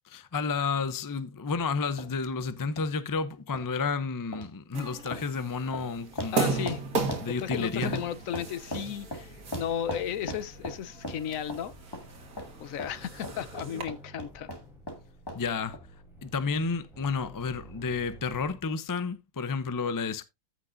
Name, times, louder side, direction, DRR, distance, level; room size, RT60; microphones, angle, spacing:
voice 1, 0.1-6.7 7.2-8.0 15.3-15.8 16.2-20.3, left 5 dB, 35° left, 0.3 m, -31 dB
sound 1, 2.0-2.1 2.8-2.9 3.5-3.7 4.3-4.5 5.1-5.3 5.7-5.9 6.2-6.4 6.7-6.8 7.1-8.1 8.3-9.3 9.5-10.8 11.0-11.2 11.5-11.6 11.9-12.0 12.4-12.5 12.8-12.9 13.2-15.0 15.3-15.4 15.7-15.8, equal, 15° left, 1.9 m, -37 dB
sound 2, 4.7-13.8, right 4 dB, 90° right, 2.2 m, -36 dB
sound 3, 4.8-18.6, right 1 dB, ahead, 3.1 m, -53 dB
voice 2, 6.3-6.8 7.4-11.7 12.6-14.5, left 9 dB, 75° left, 1.1 m, -34 dB
14.5 x 6.1 x 2.6 m
omnidirectional pair, 1.5 m